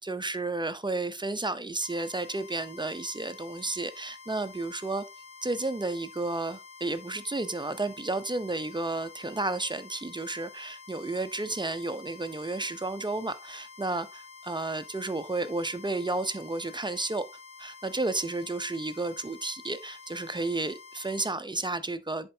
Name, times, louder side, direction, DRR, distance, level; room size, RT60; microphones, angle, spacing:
voice 1, 0.0-5.0 5.4-17.2 17.6-22.3, right 2 dB, 20° right, 0.6 m, -32 dB
sound 1, 1.8-21.4, left 5 dB, 50° left, 2.8 m, -49 dB
10.5 x 4.4 x 2.7 m
wide cardioid pair, 85°, 21 cm